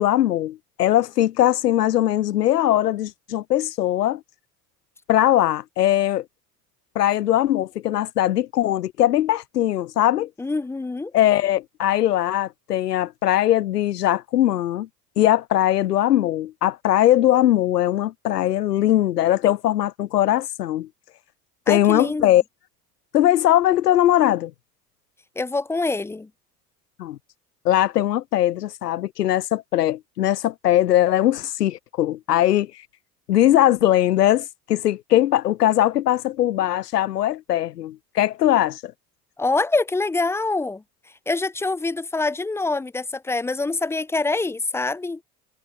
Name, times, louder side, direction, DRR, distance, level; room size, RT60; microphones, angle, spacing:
voice 1, 0.0-4.2 5.1-6.2 7.0-10.3 11.1-14.9 15.2-20.9 21.7-22.4 23.1-24.5 27.0-27.2 27.6-32.7 33.3-38.9, left 13 dB, 80° left, 0.7 m, -20 dB
voice 2, 10.4-11.1 21.7-22.3 25.4-26.3 39.4-40.8 41.3-45.2, left 3 dB, 5° left, 0.4 m, -25 dB
figure-of-eight pair, 65°, 47 cm